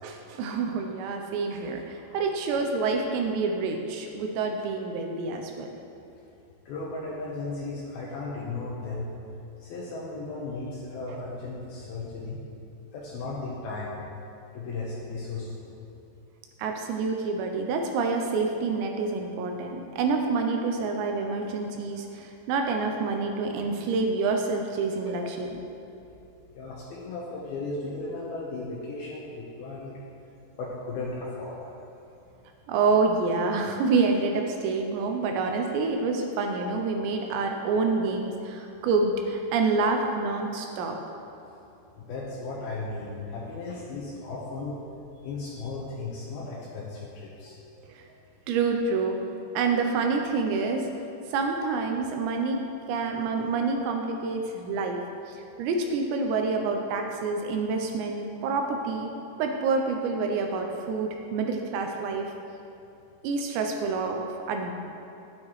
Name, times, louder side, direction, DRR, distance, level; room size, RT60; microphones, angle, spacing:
voice 1, 0.0-5.7 11.1-11.2 16.6-25.5 32.7-41.0 48.0-48.1 48.5-49.2 49.5-50.8 51.3-52.6 52.9-55.0 55.3-59.1 59.4-62.3 63.2-64.7, right 4 dB, 80° right, 3 dB, 2.8 m, -27 dB
voice 2, 6.7-9.1 9.6-12.4 12.9-14.0 14.5-15.8 25.1-25.3 26.5-30.0 30.6-31.6 42.0-44.8 45.2-47.6, left 3 dB, 75° left, -4 dB, 2.4 m, -36 dB
11.5 x 9.5 x 3.2 m, 2.9 s
omnidirectional pair, 5.4 m